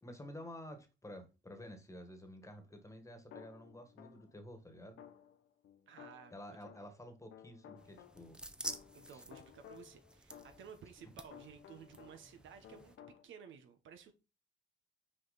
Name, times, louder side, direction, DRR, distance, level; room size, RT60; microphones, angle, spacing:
voice 1, 0.0-5.0 6.3-8.4 9.1-9.2, left 1 dB, 15° left, 7 dB, 1.5 m, -51 dB
sound 1, 3.3-4.4 5.0-12.4 12.6-13.2, left 10 dB, 75° left, 0.7 m, -57 dB
voice 2, 5.9-6.9 8.9-14.1, right 7 dB, 75° right, 8 dB, 1.1 m, -55 dB
sound 2, 7.8-13.0, right 1 dB, 5° right, 0.7 m, -50 dB
6.1 x 4.7 x 4.1 m, 0.30 s
cardioid pair, 90°, 20 cm